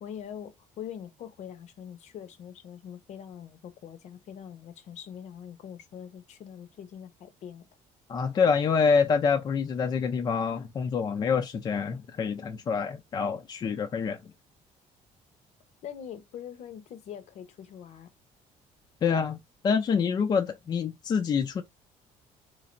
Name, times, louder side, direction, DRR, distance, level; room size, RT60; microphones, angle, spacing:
voice 1, 0.0-7.6 15.8-18.1, left 9 dB, 55° left, 0.8 m, -43 dB
voice 2, 8.1-14.2 19.0-19.4 19.6-21.6, left 6 dB, 30° left, 0.4 m, -26 dB
3.8 x 3.2 x 2.5 m
cardioid pair, 160°, 14 cm